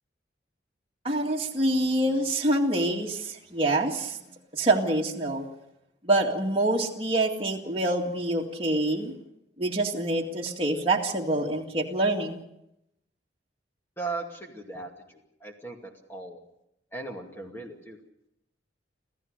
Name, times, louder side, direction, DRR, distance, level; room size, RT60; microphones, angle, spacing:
voice 1, 1.0-4.2 4.5-5.4 6.0-9.1 9.6-12.4, right 1 dB, 30° right, -1 dB, 2.1 m, -26 dB
voice 2, 14.0-16.4 16.9-18.0, right 3 dB, 10° left, 2 dB, 2.3 m, -38 dB
28.0 x 15.0 x 6.6 m, 0.82 s
head